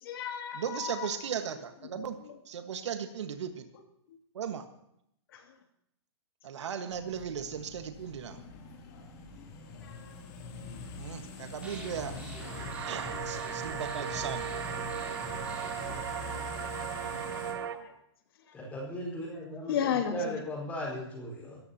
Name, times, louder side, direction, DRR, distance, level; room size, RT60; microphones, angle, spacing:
voice 1, 0.0-1.2 2.3-2.4 5.3-5.4 6.6-6.7 9.8-10.1 13.1-13.3 15.4-15.5 17.4-17.9 18.5-18.6 19.7-20.3, left 9 dB, 50° left, 4 dB, 2.5 m, -34 dB
voice 2, 0.5-2.2 2.5-3.7 4.3-4.6 6.4-8.4 11.0-12.1 12.8-14.5 16.3-16.6, right 8 dB, 75° right, 7 dB, 1.5 m, -37 dB
sound 1, 6.9-17.5, left 3 dB, 35° left, 2.8 m, -44 dB
sound 2, 11.6-16.0, left 1 dB, 10° right, 2.6 m, -44 dB
sound 3, 12.4-17.8, right 10 dB, 55° right, 1.0 m, -37 dB
voice 3, 18.5-21.6, equal, 10° left, -2 dB, 4.5 m, -37 dB
23.0 x 14.5 x 2.9 m, 0.75 s
hypercardioid pair, 170°, 15 cm